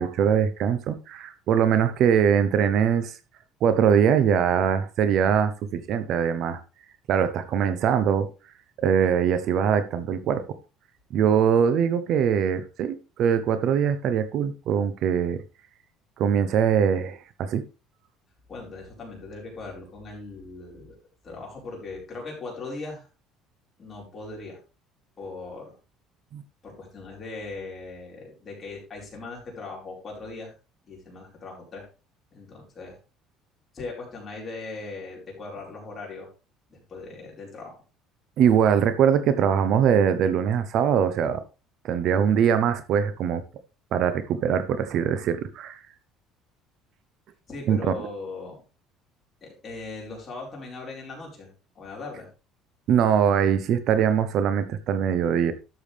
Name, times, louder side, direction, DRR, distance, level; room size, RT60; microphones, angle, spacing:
voice 1, 0.0-3.1 3.6-6.6 7.1-8.3 8.8-10.6 11.1-15.4 16.2-17.6 26.3-26.4 38.4-41.4 41.8-43.4 43.9-45.8 47.7-47.9 52.9-55.5, right 8 dB, 50° right, 0.8 m, -22 dB
voice 2, 18.5-21.0 21.2-23.1 23.8-24.6 25.2-25.8 26.6-30.5 30.9-31.9 32.3-33.0 33.7-36.3 36.7-37.8 47.5-48.6 49.4-52.3, left 3 dB, 25° left, 4.9 m, -39 dB
12.0 x 7.1 x 3.4 m
cardioid pair, 150°, 0 cm